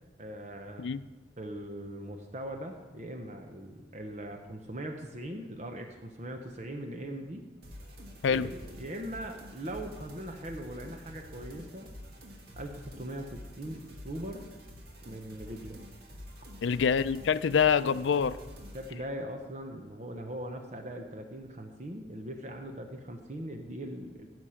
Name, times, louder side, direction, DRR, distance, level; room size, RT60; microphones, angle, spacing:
voice 1, 0.2-0.9 1.4-7.4 8.3-8.5 8.7-12.0 12.6-14.5 15.0-15.8 18.7-24.3, right 1 dB, 40° right, 4 dB, 0.8 m, -40 dB
sound 1, 7.6-18.9, equal, 60° right, 1.7 m, -48 dB
voice 2, 16.6-18.4, left 6 dB, 90° left, 15 dB, 0.4 m, -25 dB
15.0 x 6.1 x 5.7 m, 1.2 s
head